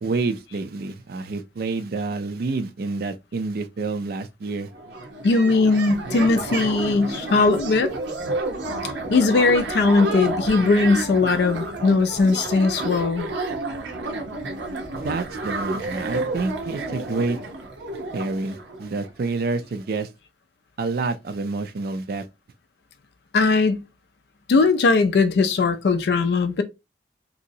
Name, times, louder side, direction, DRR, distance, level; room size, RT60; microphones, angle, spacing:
voice 1, 0.0-4.7 14.9-17.4 18.1-20.1 20.8-22.3, right 3 dB, 60° right, 0.4 m, -28 dB
sound 1, 4.4-4.5 4.7-19.3, right 2 dB, 85° right, 0.8 m, -30 dB
voice 2, 5.2-7.9 9.1-13.3 23.3-23.8 24.5-26.6, left 3 dB, 65° left, 0.4 m, -19 dB
3.0 x 2.7 x 2.6 m
head